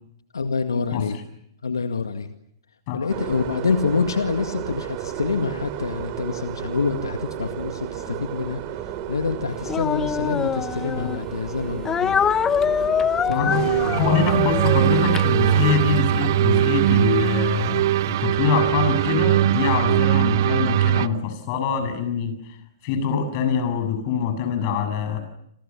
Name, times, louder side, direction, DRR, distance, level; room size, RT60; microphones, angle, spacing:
voice 1, 0.3-1.2 1.6-2.3 2.9-8.6 9.1-12.3 13.2-14.1, left 5 dB, 85° left, 7 dB, 2.1 m, -26 dB
sound 1, 3.1-15.8, right 10 dB, 40° right, 3.3 m, -33 dB
Speech, 9.6-11.2 11.8-15.9, left 7 dB, 20° left, 1.1 m, -25 dB
voice 2, 13.3-22.4 22.8-25.2, left 6 dB, 45° left, 9 dB, 7.7 m, -24 dB
sound 2, 13.5-21.1, right 12 dB, 55° right, 1.1 m, -20 dB
28.5 x 28.0 x 7.2 m, 0.75 s
hypercardioid pair, 120°, 2 cm